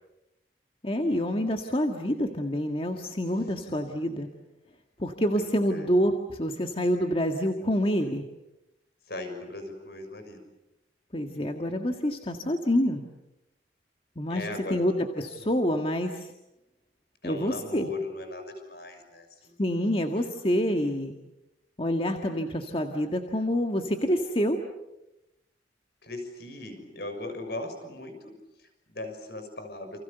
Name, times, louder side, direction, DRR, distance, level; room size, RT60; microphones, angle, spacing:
voice 1, 0.8-4.3 5.0-8.2 11.1-13.0 14.1-16.3 17.2-17.9 19.6-21.2 21.8-24.6, equal, 30° left, 4 dB, 1.8 m, -27 dB
voice 2, 3.6-4.3 5.3-5.9 9.1-10.4 14.3-14.9 15.3-15.5 17.2-19.6 22.3-22.9 26.0-28.3 28.6-30.0, left 2 dB, 60° left, 7 dB, 6.4 m, -39 dB
29.5 x 28.5 x 6.9 m, 0.90 s
head